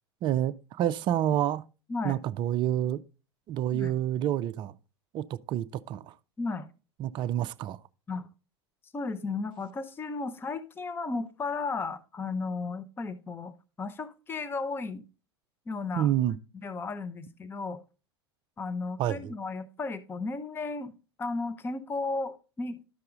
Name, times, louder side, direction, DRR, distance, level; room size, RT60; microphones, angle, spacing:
voice 1, 0.2-1.6 2.0-3.0 3.5-4.7 5.1-6.1 7.0-7.8 16.0-16.4 19.0-19.3, right 11 dB, 35° right, 0.4 m, -28 dB
voice 2, 1.9-2.2 3.7-3.9 6.4-6.7 8.1-8.3 8.9-15.0 15.7-16.1 16.5-17.8 18.6-22.8, left 3 dB, 15° left, 0.6 m, -34 dB
11.5 x 6.6 x 2.4 m
figure-of-eight pair, 85°, 14 cm